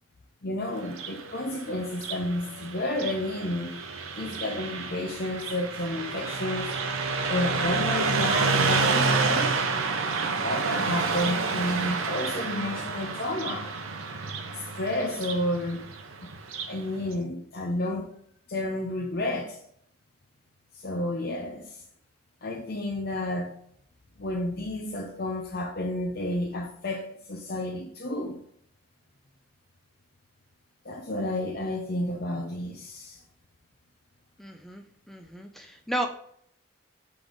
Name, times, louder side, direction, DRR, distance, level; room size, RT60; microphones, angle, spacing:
voice 1, 0.4-3.8 4.2-6.8 7.3-9.6 10.3-13.7 14.5-15.9 16.2-16.3 16.6-18.1 18.5-19.6 20.7-21.8 22.4-23.5 24.2-28.4 30.8-33.2, left 1 dB, 50° left, 0.7 m, -31 dB
Car passing by, 0.8-16.8, right 4 dB, 80° right, 0.8 m, -29 dB
voice 2, 34.4-36.1, right 1 dB, ahead, 0.5 m, -34 dB
6.0 x 3.5 x 5.0 m
head